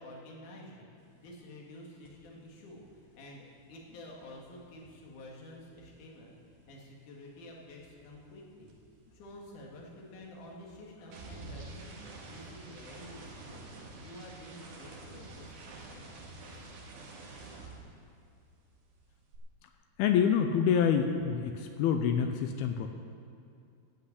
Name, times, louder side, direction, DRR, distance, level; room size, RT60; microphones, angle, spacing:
voice 1, 0.0-6.3 6.7-8.8 9.1-16.1, left 1 dB, 55° left, -2 dB, 3.2 m, -50 dB
sound 1, 2.0-2.3 2.5-6.9 7.2-18.5 18.7-19.4, right 3 dB, 85° right, 4.0 m, -50 dB
voice 2, 20.0-22.9, left 7 dB, 80° left, 6 dB, 2.4 m, -27 dB
13.5 x 8.2 x 8.4 m, 2.4 s
omnidirectional pair, 4.8 m